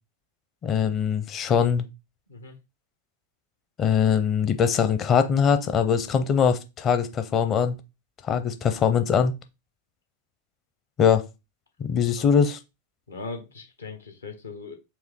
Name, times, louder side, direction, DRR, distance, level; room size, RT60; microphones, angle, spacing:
voice 1, 0.6-1.9 3.8-7.7 8.2-9.3 11.0-11.2 11.8-12.6, left 7 dB, 30° left, 0.7 m, -22 dB
voice 2, 13.1-14.7, left 3 dB, 75° left, 1.1 m, -39 dB
4.6 x 2.7 x 3.7 m
figure-of-eight pair, 90°, 0 cm